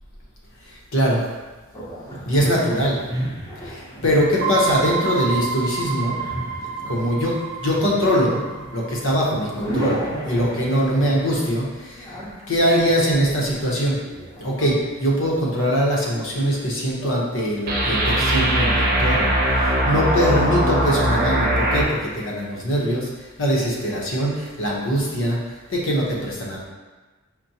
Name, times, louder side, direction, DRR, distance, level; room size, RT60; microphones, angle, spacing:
voice 1, 0.9-1.2 2.3-3.0 3.6-6.2 6.9-8.4 8.7-12.1 12.5-14.0 14.4-19.3 19.6-23.1 23.4-25.4 25.7-26.7, equal, 65° left, -3 dB, 0.9 m, -22 dB
sound 1, 1.7-14.4, right 1 dB, 15° left, 0.7 m, -34 dB
sound 2, 4.4-9.3 9.7-9.8 17.7-21.8, right 1 dB, 45° right, 0.8 m, -22 dB
sound 3, 14.5-18.0, left 3 dB, 80° left, 1.2 m, -39 dB
5.9 x 2.1 x 2.7 m, 1.2 s
head